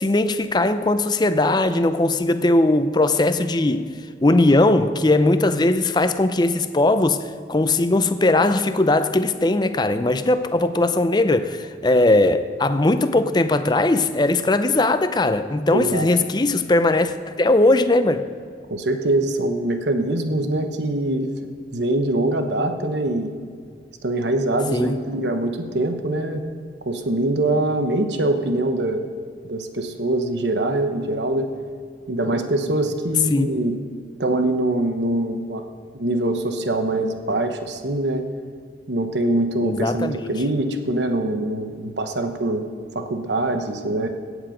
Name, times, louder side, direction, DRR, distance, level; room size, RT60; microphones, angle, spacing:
voice 1, 0.0-3.9 4.2-18.2 24.7-25.0 33.3-33.5 39.6-40.3, left 2 dB, 25° left, 0.5 m, -19 dB
voice 2, 15.7-16.1 18.7-21.3 21.7-23.3 24.0-26.5 26.8-29.1 29.4-31.5 32.1-33.8 34.2-35.6 35.9-38.2 38.9-42.7 42.9-44.1, right 1 dB, 75° right, 1.0 m, -23 dB
16.5 x 8.1 x 5.0 m
head